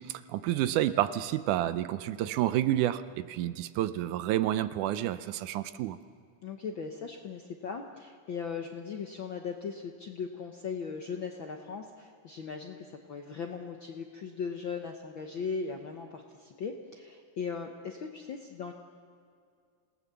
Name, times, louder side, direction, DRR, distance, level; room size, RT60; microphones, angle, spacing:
voice 1, 0.0-6.0, right 13 dB, 80° right, 13 dB, 2.1 m, -29 dB
voice 2, 6.4-18.7, left 5 dB, 65° left, 3 dB, 1.2 m, -38 dB
27.5 x 18.0 x 6.9 m, 2.2 s
omnidirectional pair, 3.6 m